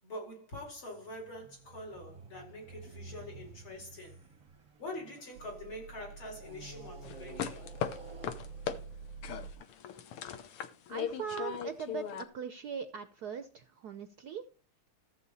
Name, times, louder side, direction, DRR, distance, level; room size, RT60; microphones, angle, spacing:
voice 1, 0.0-4.2 4.8-7.7, left 1 dB, 65° left, 5.3 m, -45 dB
sound 1, 0.9-5.6 6.3-9.8, right 2 dB, 25° right, 0.8 m, -53 dB
sound 2, 4.3-9.5, right 5 dB, 90° right, 1.8 m, -49 dB
sound 3, 7.0-8.8 9.2-12.2, left 8 dB, 85° left, 1.9 m, -38 dB
voice 2, 10.9-14.4, right 7 dB, 65° right, 1.0 m, -40 dB
14.0 x 7.6 x 4.1 m
omnidirectional pair, 2.4 m